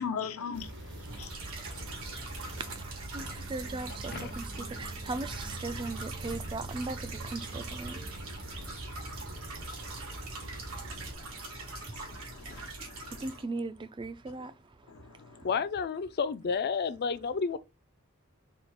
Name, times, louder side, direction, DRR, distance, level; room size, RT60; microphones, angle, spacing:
voice 1, 0.0-2.5 7.9-13.2 14.9-15.5, left 6 dB, 90° left, 0.6 m, -44 dB
sound 1, 0.5-11.2, right 2 dB, 60° right, 1.0 m, -43 dB
sound 2, 1.0-13.4, right 3 dB, 85° right, 1.6 m, -43 dB
voice 2, 2.5-2.9 3.1-8.0 13.2-14.5, right 3 dB, 25° right, 0.4 m, -38 dB
voice 3, 15.4-17.6, left 5 dB, 50° left, 0.4 m, -31 dB
4.3 x 2.4 x 4.5 m
head